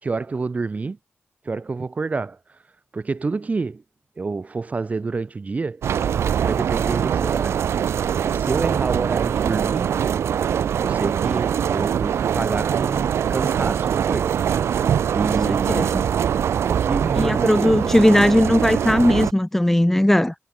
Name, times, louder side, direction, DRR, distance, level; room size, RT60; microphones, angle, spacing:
voice 1, 0.0-1.0 1.4-2.4 2.9-3.8 4.2-5.9 6.4-7.6 8.3-9.9 10.8-14.4 15.1-16.1 16.7-17.9, right 4 dB, 35° right, 3.2 m, -28 dB
sound 1, 5.8-19.3, right 8 dB, 80° right, 0.4 m, -22 dB
voice 2, 15.5-15.9 17.2-20.3, left 1 dB, 5° left, 1.3 m, -18 dB
wide cardioid pair, 125°, 4 cm